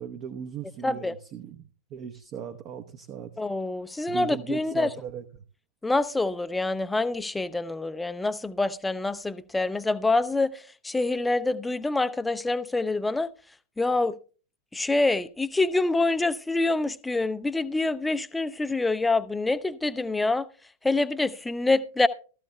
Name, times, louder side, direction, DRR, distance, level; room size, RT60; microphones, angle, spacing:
voice 1, 0.0-1.6 1.9-3.3 4.1-5.2, right 8 dB, 40° right, 0.8 m, -38 dB
voice 2, 0.8-1.1 3.4-4.9 5.8-13.3 13.8-14.1 14.7-20.5 20.8-22.1, left 2 dB, 10° left, 0.5 m, -26 dB
15.5 x 13.5 x 2.2 m
figure-of-eight pair, 90°, 0 cm